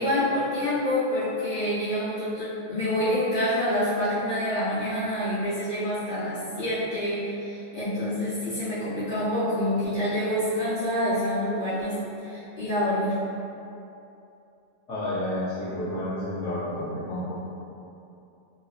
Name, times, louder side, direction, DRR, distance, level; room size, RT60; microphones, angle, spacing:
voice 1, 0.0-13.2, left 1 dB, 55° left, -14 dB, 1.9 m, -27 dB
voice 2, 14.9-17.4, left 1 dB, 85° left, -14 dB, 1.2 m, -30 dB
4.0 x 2.6 x 2.4 m, 2.8 s
omnidirectional pair, 1.2 m